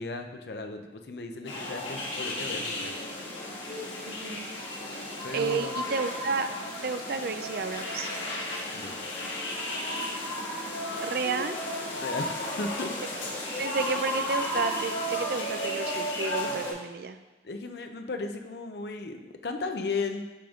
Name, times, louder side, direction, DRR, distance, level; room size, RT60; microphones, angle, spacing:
voice 1, 0.0-2.9 5.2-5.8 8.7-9.1 12.0-13.1 16.5-16.6 17.4-20.2, left 3 dB, 60° left, 6 dB, 0.6 m, -36 dB
sound 1, 1.4-16.7, left 1 dB, 85° left, 1.7 m, -34 dB
voice 2, 4.1-4.5 5.3-6.5 6.8-8.1 11.0-11.6 13.6-17.2, right 4 dB, 55° right, 9 dB, 0.4 m, -31 dB
10.0 x 3.7 x 3.6 m, 1.1 s
head